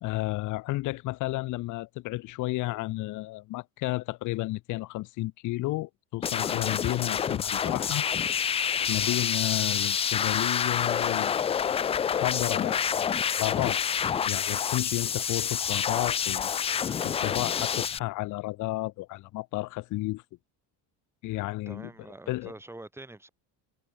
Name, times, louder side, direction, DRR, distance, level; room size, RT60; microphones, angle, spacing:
voice 1, 0.0-8.0 8.9-11.3 12.1-13.8 14.2-20.2 21.2-21.9 22.3-22.5, left 19 dB, 50° left, 0.9 m, -32 dB
sound 1, 6.2-18.0, left 8 dB, 15° left, 0.3 m, -28 dB
voice 2, 21.7-23.3, right 2 dB, 5° right, 3.4 m, -45 dB
cardioid pair, 155°, 39 cm